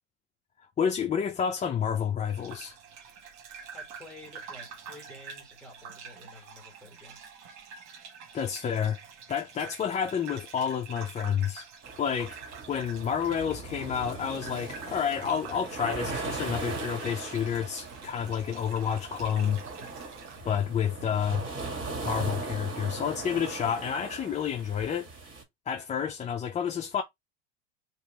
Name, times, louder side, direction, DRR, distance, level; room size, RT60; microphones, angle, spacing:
voice 1, 0.6-2.8 8.3-9.0 9.3-11.7 12.0-19.6 20.4-21.4 22.0-25.1 25.7-27.0, left 8 dB, 20° left, 0.5 m, -30 dB
sound 1, 2.3-20.4, right 6 dB, 60° right, 1.2 m, -47 dB
voice 2, 3.7-7.3, left 1 dB, 5° left, 1.7 m, -50 dB
sound 2, 11.8-25.4, right 3 dB, 40° right, 2.2 m, -39 dB
3.0 x 3.0 x 4.2 m
supercardioid pair, 110°, 34 cm